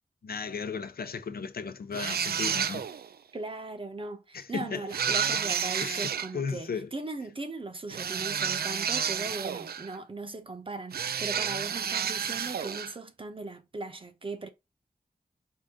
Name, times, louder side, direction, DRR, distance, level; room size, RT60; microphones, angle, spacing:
voice 1, 0.2-2.9 4.3-5.3 5.8-6.9, left 5 dB, 80° left, 0.6 m, -36 dB
sound 1, 1.9-3.1 4.9-6.3 7.9-10.0 10.9-12.9, right 7 dB, 90° right, 0.4 m, -30 dB
voice 2, 3.3-14.5, right 3 dB, 35° right, 0.8 m, -38 dB
4.7 x 2.6 x 3.6 m
wide cardioid pair, 110°, 16 cm